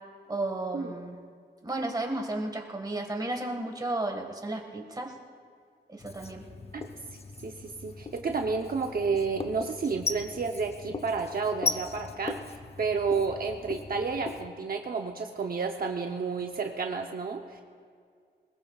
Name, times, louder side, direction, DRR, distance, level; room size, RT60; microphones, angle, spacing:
voice 1, 0.3-1.2 1.6-5.1 5.9-6.5, right 2 dB, 20° right, 2 dB, 1.7 m, -33 dB
Writing, 6.0-14.5, left 3 dB, 35° left, 0.7 m, -38 dB
voice 2, 7.4-12.4 12.8-17.6, right 4 dB, 60° right, 3 dB, 0.8 m, -31 dB
21.5 x 20.0 x 2.4 m, 2.2 s
wide cardioid pair, 130°, 18 cm